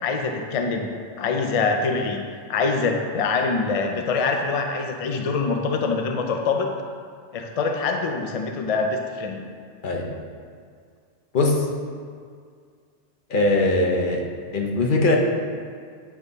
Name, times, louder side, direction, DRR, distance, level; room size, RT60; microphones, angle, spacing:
voice 1, 0.0-0.9 1.2-2.2 2.5-6.7 7.3-9.4, left 4 dB, 70° left, 3 dB, 0.3 m, -24 dB
voice 2, 11.3-11.7 13.3-14.2 14.5-15.2, left 2 dB, 50° left, 0 dB, 0.9 m, -20 dB
8.7 x 3.5 x 4.0 m, 2.1 s
omnidirectional pair, 1.2 m